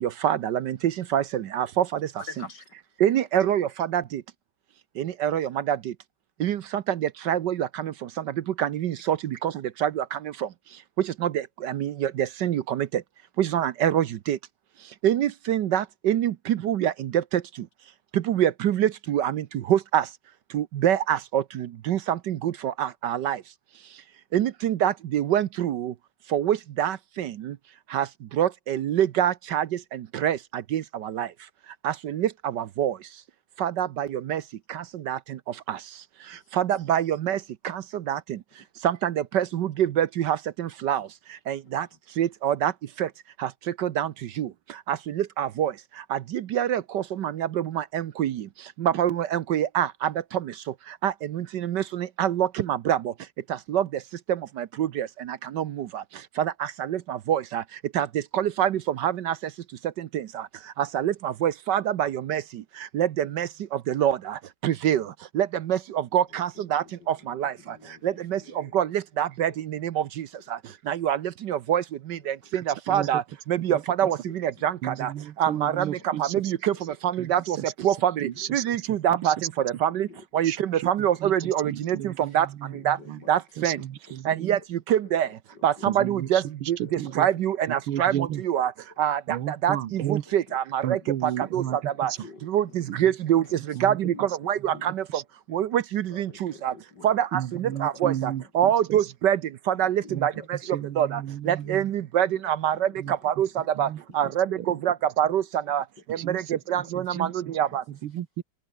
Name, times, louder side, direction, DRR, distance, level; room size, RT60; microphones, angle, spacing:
voice 1, 0.0-2.0 3.0-4.2 5.0-5.8 6.4-7.9 8.6-9.5 9.8-10.2 11.2-12.9 13.4-14.4 15.0-17.2 18.1-20.0 20.5-23.4 24.3-25.9 26.3-27.5 27.9-28.1 28.4-30.4 30.7-31.3 31.8-32.9 33.6-34.4 34.7-35.2 35.7-35.8 36.5-37.4 37.6-38.4 38.8-41.1 41.5-41.9 42.2-42.7 43.0-43.1 43.8-44.1 44.4-44.5 44.9-45.7 46.1-48.4 48.8-50.4 51.0-53.0 53.7-53.9 54.3-56.0 56.4-57.6 57.9-58.1 58.3-59.3 60.0-60.4 60.8-62.4 62.9-63.5 63.9-65.0 65.3-67.5 68.0-70.2 70.9-71.8 72.1-73.2 73.5-75.1 75.4-77.6 77.8-80.1 80.3-82.5 82.8-83.0 83.3-83.8 84.2-85.3 85.6-86.8 87.2-88.7 89.0-89.2 89.5-91.6 92.0-92.1 92.5-93.4 93.8-95.0 95.5-96.7 97.0-99.4 99.7-100.6 101.0-103.5 103.8-103.9 104.1-105.8 106.2-106.4 106.7-107.8, right 10 dB, 65° right, 1.3 m, -25 dB
voice 2, 2.2-2.8 36.3-36.6 38.6-38.7 41.0-41.1 41.6-42.3 66.3-68.9 69.5-69.6 70.3-71.1 72.2-72.5 73.0-73.1 74.0-75.1 75.4-76.8 77.2-77.3 78.2-78.7 79.6-80.5 81.1-81.2 81.8-82.4 82.7-83.3 83.7-83.8 84.6-84.7 85.0-86.3 86.8-87.4 87.9-88.0 88.6-89.0 90.3-90.6 91.0-93.2 93.4-94.9 95.5-95.6 96.1-98.0 98.4-98.8 99.7-100.8 101.4-102.4 102.7-104.8 105.3-105.4 105.6-107.8, left 4 dB, 50° left, 4.2 m, -50 dB
voice 3, 72.5-73.2 73.6-74.1 74.8-76.5 77.2-77.7 78.2-79.5 80.4-83.2 83.6-84.6 85.9-87.3 87.7-88.4 89.3-90.3 90.8-92.2 92.9-93.1 93.6-94.0 94.7-94.8 95.1-95.2 97.3-99.1 100.1-100.3 100.6-101.9 103.0-103.2 103.8-104.0 104.6-104.7 106.1-107.6 107.9-108.4, right 11 dB, 80° right, 2.0 m, -34 dB
open air
omnidirectional pair, 2.3 m